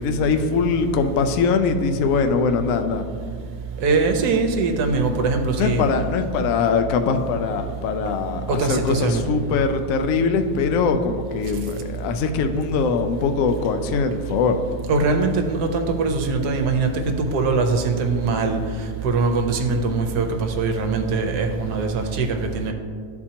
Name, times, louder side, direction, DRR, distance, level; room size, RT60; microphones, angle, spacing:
voice 1, 0.0-3.0 5.6-14.6, left 5 dB, 70° left, 7 dB, 0.8 m, -22 dB
voice 2, 3.8-5.8 8.5-9.2 14.9-18.6 19.0-22.7, right 4 dB, 75° right, 4 dB, 1.2 m, -22 dB
11.0 x 4.3 x 2.8 m, 2.1 s
omnidirectional pair, 1.8 m